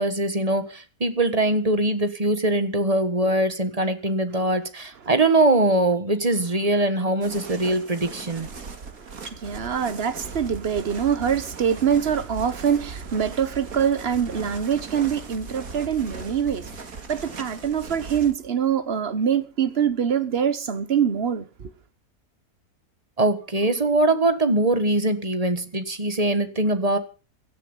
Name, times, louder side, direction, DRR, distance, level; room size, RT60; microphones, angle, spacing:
voice 1, 0.0-8.5 23.2-27.0, right 2 dB, 25° right, 1.6 m, -22 dB
sound 1, 7.2-18.3, right 4 dB, 75° right, 2.4 m, -39 dB
voice 2, 8.7-21.7, right 8 dB, 45° right, 1.3 m, -24 dB
17.5 x 12.5 x 5.5 m
omnidirectional pair, 1.5 m